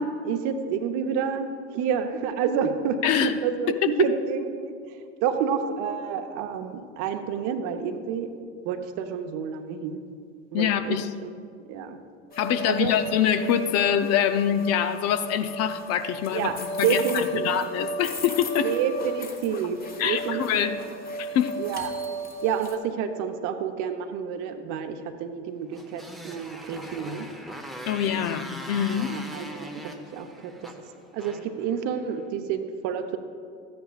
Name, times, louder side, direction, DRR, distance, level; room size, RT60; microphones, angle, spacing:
voice 1, 0.0-8.3 8.6-10.0 10.5-11.3 11.6-12.0 12.7-12.9 16.3-16.5 16.8-17.5 18.6-19.8 20.0-20.7 21.6-21.9 22.4-27.3 28.9-30.5 31.1-33.2, right 7 dB, 55° right, 7 dB, 0.9 m, -29 dB
voice 2, 3.0-3.4 10.5-11.1 12.4-17.0 17.4-18.7 20.0-20.8 21.2-21.6 27.9-29.1, left 9 dB, 45° left, 10 dB, 0.6 m, -25 dB
sound 1, 12.3-22.8, right 1 dB, 25° left, 1.3 m, -35 dB
Motorcycle, 25.7-32.2, equal, ahead, 0.8 m, -41 dB
14.0 x 9.5 x 2.4 m, 2.2 s
hypercardioid pair, 75°, 35 cm